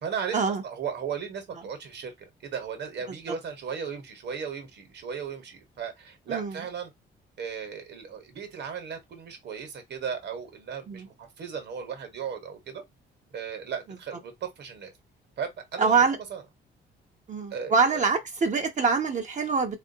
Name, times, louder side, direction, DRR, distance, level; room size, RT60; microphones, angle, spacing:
voice 1, 0.0-6.9 7.4-12.8 13.3-14.9 15.4-16.0 16.3-16.4 17.5-18.0, right 7 dB, 60° right, 1.2 m, -36 dB
voice 2, 15.8-16.2 17.3-19.8, right 5 dB, 40° right, 0.7 m, -24 dB
3.4 x 2.5 x 2.7 m
cardioid pair, 90°, 20 cm